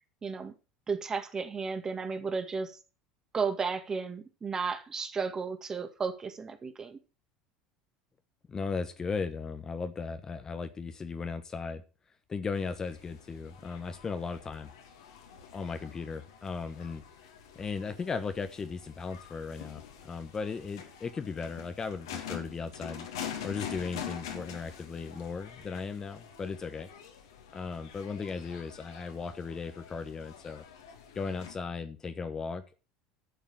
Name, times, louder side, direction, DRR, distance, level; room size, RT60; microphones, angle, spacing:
voice 1, 0.2-0.5 0.9-2.8 3.3-7.0, right 5 dB, 25° right, 8 dB, 1.9 m, -33 dB
voice 2, 8.5-11.8 12.3-14.7 15.5-17.0 17.5-23.1 23.4-26.9 27.5-30.6 31.1-32.8, left 5 dB, 25° left, 9 dB, 1.1 m, -36 dB
sound 1, 12.5-31.5, left 8 dB, 65° left, 2.2 m, -46 dB
11.5 x 7.3 x 6.0 m, 0.33 s
figure-of-eight pair, 70°, 2 cm